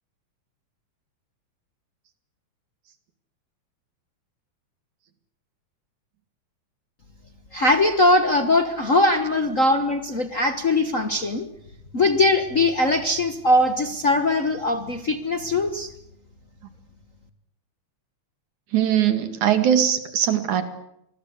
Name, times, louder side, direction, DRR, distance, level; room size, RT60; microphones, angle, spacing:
voice 1, 7.5-11.5 11.9-15.9, left 2 dB, 40° left, 7 dB, 1.1 m, -21 dB
voice 2, 18.7-20.6, right 9 dB, 85° right, 10 dB, 3.5 m, -20 dB
26.0 x 20.5 x 8.2 m, 0.77 s
omnidirectional pair, 3.3 m